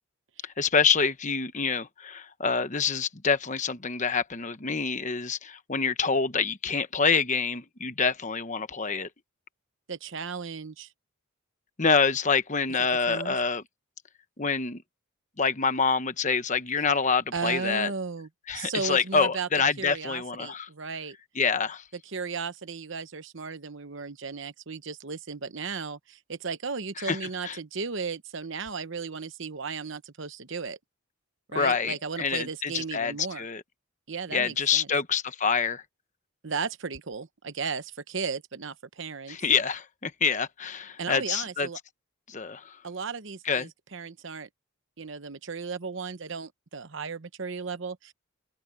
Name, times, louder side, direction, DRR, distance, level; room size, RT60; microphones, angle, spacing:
voice 1, 0.4-9.1 11.8-13.6 14.4-14.8 15.4-17.9 18.5-20.7 21.3-21.8 27.0-27.2 27.4-27.6 31.5-33.6 34.3-35.8 39.3-41.7 42.3-42.8 43.4-43.7, left 5 dB, 35° left, 1.1 m, -26 dB
voice 2, 9.9-10.9 12.8-13.4 17.3-18.3 18.5-19.5 19.8-21.2 22.0-30.8 31.5-33.5 34.1-34.9 36.4-39.4 41.0-41.8 42.8-44.5 45.0-48.1, right 5 dB, 60° right, 0.9 m, -35 dB
open air
head